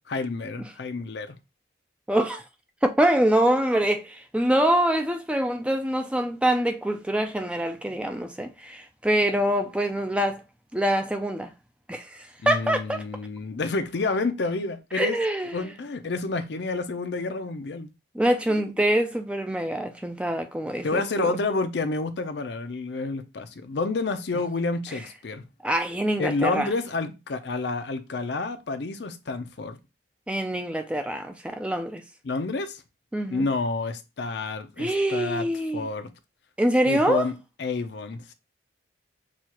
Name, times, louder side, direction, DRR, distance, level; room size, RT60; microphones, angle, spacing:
voice 1, 0.1-1.3 12.4-15.2 15.5-17.9 20.8-25.4 26.2-29.8 32.2-32.8 33.3-35.5 35.7-36.1 36.8-38.3, left 3 dB, 65° left, 0.5 m, -29 dB
voice 2, 2.1-2.4 2.8-10.4 10.7-11.5 11.9-13.0 14.9-15.5 18.1-21.3 25.6-26.7 30.3-32.0 33.1-33.5 34.8-35.9 36.6-37.3, right 1 dB, 5° right, 0.3 m, -25 dB
6.1 x 2.4 x 2.9 m
head